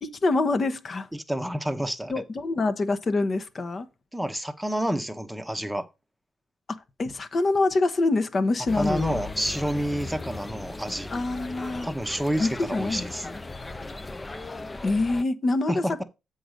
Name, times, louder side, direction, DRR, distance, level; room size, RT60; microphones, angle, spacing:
voice 1, 0.0-1.1 2.1-3.9 6.7-9.2 11.1-11.9 12.4-13.4 14.8-16.0, left 2 dB, 40° left, 0.9 m, -26 dB
voice 2, 1.1-2.2 4.1-5.9 8.8-11.1 11.8-13.3 15.7-16.0, equal, 5° right, 0.9 m, -29 dB
sound 1, 8.7-15.2, left 3 dB, 20° left, 0.5 m, -37 dB
7.7 x 4.0 x 6.5 m
cardioid pair, 90°, 0 cm